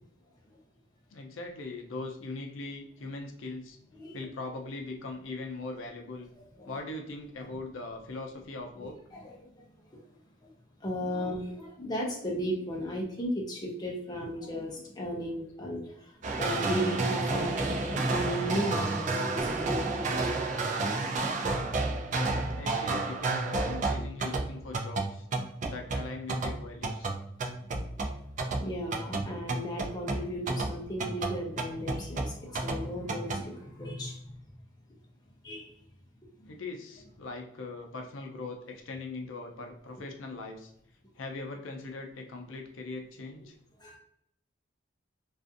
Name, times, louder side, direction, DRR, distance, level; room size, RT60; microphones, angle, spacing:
voice 1, 1.1-3.8 4.1-6.3 6.6-9.0 22.5-25.3 25.7-27.1 36.5-40.7 41.2-43.5, left 3 dB, 80° left, 3 dB, 0.5 m, -40 dB
voice 2, 6.4-6.8 8.8-10.0 10.4-10.5 10.8-20.3 28.1-28.2 28.6-34.4 35.4-35.7 36.4-36.5 43.8-44.0, equal, 20° left, -1 dB, 0.5 m, -36 dB
sound 1, 16.2-33.4, right 3 dB, 40° right, 0.3 m, -31 dB
2.5 x 2.4 x 2.4 m, 0.75 s
head